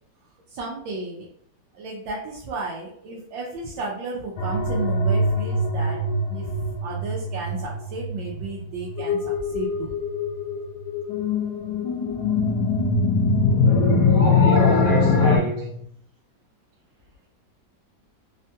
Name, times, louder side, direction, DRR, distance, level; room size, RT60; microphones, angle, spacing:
voice 1, 0.5-1.3 1.7-6.0 6.3-9.9, right 3 dB, 85° right, -4 dB, 1.3 m, -33 dB
sound 1, 4.4-15.4, left 3 dB, 70° left, 1.1 m, -22 dB
voice 2, 14.1-15.8, right 2 dB, 60° right, -5 dB, 1.1 m, -26 dB
3.4 x 2.2 x 2.7 m, 0.66 s
omnidirectional pair, 2.0 m